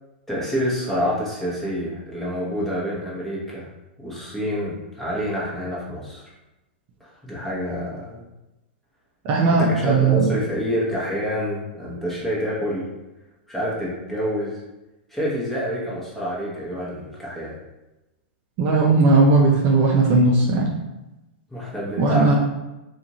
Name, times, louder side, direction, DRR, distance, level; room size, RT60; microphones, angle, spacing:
voice 1, 0.3-3.7 4.0-6.3 7.0-8.2 9.5-12.9 13.5-14.6 15.1-17.5 21.5-22.3, equal, 5° left, -7 dB, 0.9 m, -27 dB
voice 2, 9.2-10.3 18.6-20.7 22.0-22.3, right 3 dB, 40° right, -2 dB, 0.5 m, -17 dB
2.5 x 2.4 x 2.9 m, 0.99 s
hypercardioid pair, 125°, 6 cm